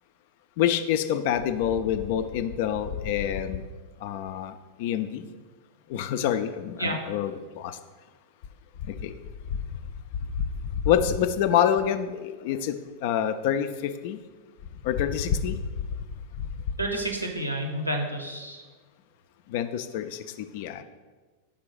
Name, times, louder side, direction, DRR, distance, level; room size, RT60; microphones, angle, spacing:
voice 1, 0.6-3.6 4.0-4.5 4.8-5.2 5.9-7.7 9.0-9.1 10.8-12.7 13.0-13.7 14.0-14.2 14.9-15.6 19.5-20.0 20.5-20.8, left 9 dB, 50° left, 10 dB, 0.3 m, -26 dB
voice 2, 16.8-18.6, right 1 dB, 90° right, 3 dB, 0.7 m, -30 dB
5.1 x 3.8 x 4.9 m, 1.3 s
figure-of-eight pair, 90°, 0 cm